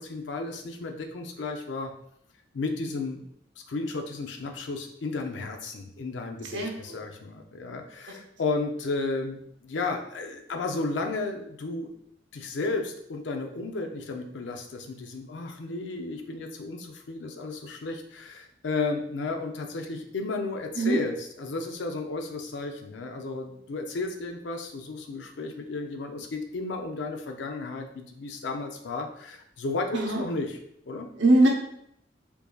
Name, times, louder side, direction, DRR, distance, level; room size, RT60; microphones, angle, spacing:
voice 1, 0.0-1.9 2.5-3.3 3.7-11.9 12.3-30.6 30.9-31.1, left 3 dB, 70° left, 4 dB, 0.5 m, -33 dB
voice 2, 6.4-7.0 20.7-21.0 29.9-30.2 31.2-31.5, right 2 dB, 70° right, 1 dB, 0.7 m, -22 dB
4.5 x 2.7 x 2.3 m, 0.71 s
head